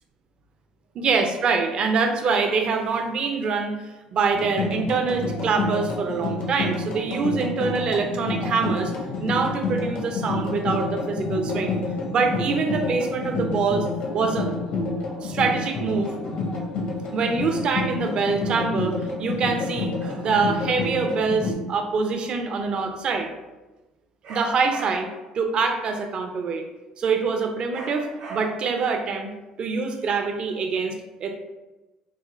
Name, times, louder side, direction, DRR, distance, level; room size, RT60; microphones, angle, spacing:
voice 1, 0.9-3.8 4.1-8.9 9.2-11.8 12.1-13.9 14.1-14.5 15.2-16.1 17.1-23.3 24.3-25.1 25.3-26.7 27.0-29.3 29.6-31.3, right 4 dB, 50° right, 5 dB, 0.5 m, -25 dB
sound 1, 4.3-21.5, left 3 dB, 65° left, 0.8 m, -29 dB
sound 2, 7.6-12.9, left 7 dB, 30° left, 0.4 m, -49 dB
sound 3, 24.2-25.2 27.7-28.8, right 2 dB, 75° right, 1.1 m, -39 dB
3.7 x 2.1 x 3.1 m, 1.1 s
supercardioid pair, 75°, 2 cm